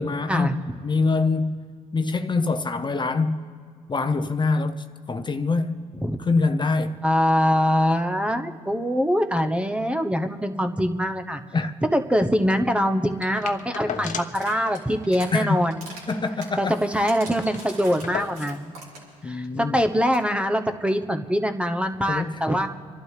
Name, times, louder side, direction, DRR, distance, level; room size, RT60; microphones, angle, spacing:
voice 1, 0.0-1.6 1.9-3.4 3.9-5.8 6.2-7.0 11.5-11.8 13.8-14.1 15.3-15.6 16.1-16.8 19.2-19.8 22.0-22.4, left 3 dB, 30° left, 0.8 m, -25 dB
voice 2, 7.0-11.4 11.9-15.8 16.6-18.8 19.2-22.7, equal, 10° right, 0.9 m, -23 dB
sound 1, 13.2-14.5 14.8-14.9 15.2-15.4 15.8-16.9 17.1-17.2 17.4-18.7 19.6-19.7, left 7 dB, 55° left, 1.0 m, -36 dB
sound 2, 14.4-15.3 15.7-19.2 19.4-19.5 19.8-19.9 20.1-20.3, right 2 dB, 85° right, 3.4 m, -42 dB
26.0 x 11.5 x 3.4 m
supercardioid pair, 60°, 15 cm